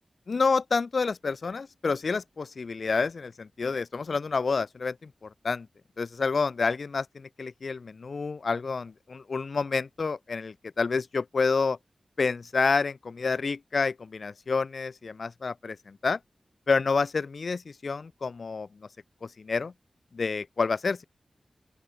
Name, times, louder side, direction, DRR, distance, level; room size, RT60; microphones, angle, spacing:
voice 1, 0.3-5.7 6.0-11.8 12.2-16.2 16.7-18.7 19.2-19.7 20.1-21.0, left 4 dB, 65° left, 1.0 m, -28 dB
open air
wide cardioid pair, 95°, 0 cm